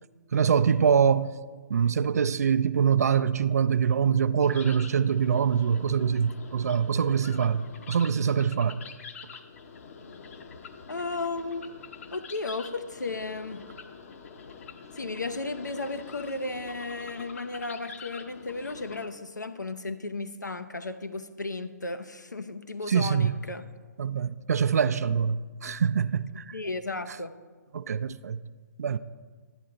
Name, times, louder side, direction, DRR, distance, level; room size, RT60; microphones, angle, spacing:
voice 1, 0.3-1.4 1.7-8.8 22.9-23.3 24.0-26.5 27.7-28.4 28.8-29.0, right 7 dB, 60° right, 0.4 m, -24 dB
sound 1, 4.4-19.1, left 5 dB, 50° left, 0.9 m, -46 dB
voice 2, 10.9-11.7 12.1-13.6 14.9-23.6 26.5-27.3, left 3 dB, 85° left, 0.7 m, -34 dB
11.0 x 9.2 x 3.8 m
figure-of-eight pair, 130°, 9 cm